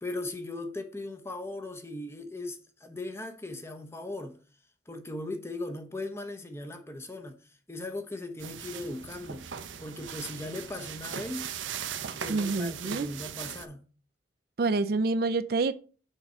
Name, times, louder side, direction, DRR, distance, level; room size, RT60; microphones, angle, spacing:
voice 1, 0.0-4.4 4.9-7.4 7.7-9.5 9.8-11.5 12.1-13.9, left 2 dB, 15° left, 0.8 m, -38 dB
sound 1, 8.4-13.6, right 8 dB, 90° right, 0.7 m, -39 dB
voice 2, 12.3-13.1 14.6-15.7, right 3 dB, 55° right, 0.4 m, -27 dB
6.7 x 4.4 x 5.7 m
head